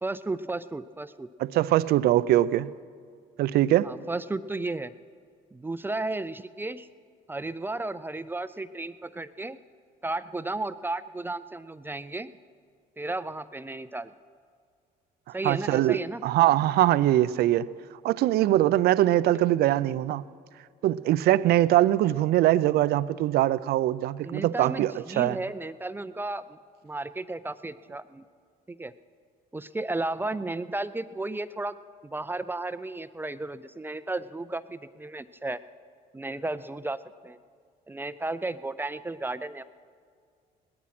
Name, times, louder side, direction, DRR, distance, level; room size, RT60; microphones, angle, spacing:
voice 1, 0.0-1.3 3.8-4.9 5.5-6.9 7.3-9.6 10.0-12.3 13.0-14.1 15.3-16.2 24.2-26.6 26.8-28.2 28.7-28.9 29.5-31.7 32.0-35.6 36.1-37.4 37.9-39.6, right 2 dB, 10° right, 0.4 m, -33 dB
voice 2, 1.4-2.7 3.4-3.9 15.4-17.7 18.0-20.2 20.8-25.4, right 14 dB, 70° right, 0.5 m, -22 dB
18.5 x 12.5 x 6.0 m
cardioid pair, 110°, 17 cm